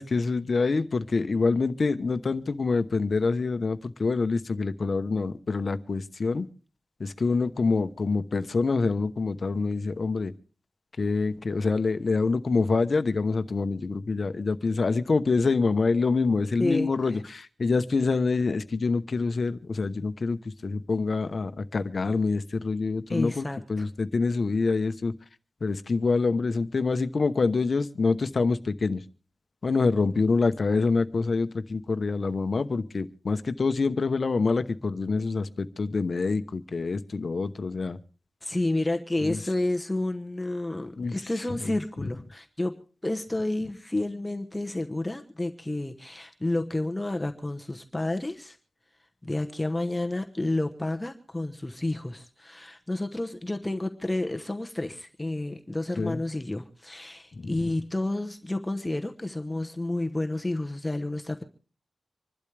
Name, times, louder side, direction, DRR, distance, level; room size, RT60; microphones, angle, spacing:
voice 1, 0.0-6.5 7.0-10.3 11.0-25.1 25.6-29.0 29.6-38.0 39.2-39.4 41.0-41.1 41.6-41.7 56.0-56.2 57.4-57.5, left 4 dB, 50° left, 10 dB, 1.0 m, -26 dB
voice 2, 16.6-17.2 23.1-23.9 38.4-48.6 49.2-61.4, left 2 dB, 15° left, 5 dB, 1.0 m, -30 dB
26.0 x 12.0 x 3.4 m, 0.37 s
wide cardioid pair, 110°, 0 cm